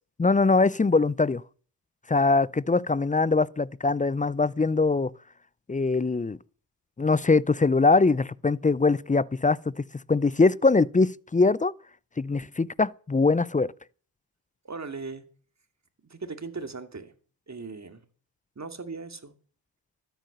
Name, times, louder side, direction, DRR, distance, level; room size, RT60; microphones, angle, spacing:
voice 1, 0.2-1.4 2.1-5.1 5.7-6.4 7.0-11.7 12.2-13.7, left 3 dB, 15° left, 0.6 m, -22 dB
voice 2, 14.6-15.2 16.1-17.1 17.5-18.0 18.6-19.3, right 4 dB, 35° right, 2.6 m, -38 dB
13.0 x 9.4 x 6.8 m
supercardioid pair, 45°, 50 cm